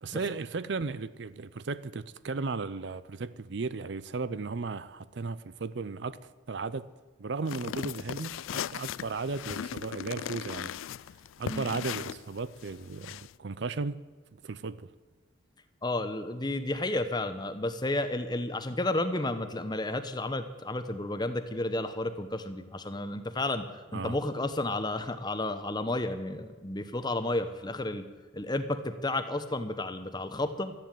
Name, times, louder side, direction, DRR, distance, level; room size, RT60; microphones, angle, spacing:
voice 1, 0.0-6.9 7.2-10.7 11.4-14.0 14.4-14.9 23.9-24.2, right 4 dB, 60° right, 0.5 m, -35 dB
sound 1, 7.4-13.3, left 9 dB, 85° left, 0.4 m, -38 dB
voice 2, 15.8-23.7 23.9-28.1 28.3-30.7, left 2 dB, 20° left, 0.9 m, -32 dB
13.5 x 10.5 x 9.2 m
head